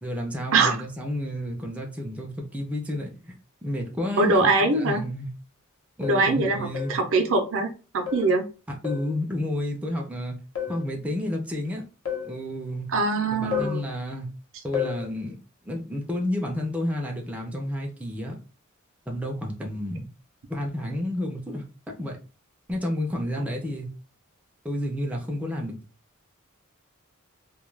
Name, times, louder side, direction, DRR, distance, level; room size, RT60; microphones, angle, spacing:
voice 1, 0.0-3.3 3.6-5.3 6.0-7.0 8.7-10.4 10.7-11.8 12.2-12.9 13.3-14.3 14.6-15.4 15.6-18.4 19.1-20.1 20.5-22.2 22.7-23.9 24.6-25.8, left 1 dB, 5° right, 0.5 m, -31 dB
voice 2, 4.2-5.0 6.1-8.4 12.9-13.8, right 3 dB, 65° right, 0.5 m, -22 dB
sound 1, 5.0-5.1 6.0-6.3 6.7-7.0 8.1-8.4 8.8-9.2 10.6-10.9 12.1-12.4 13.5-13.8 14.7-15.1, left 8 dB, 80° left, 0.8 m, -31 dB
2.3 x 2.2 x 3.1 m
head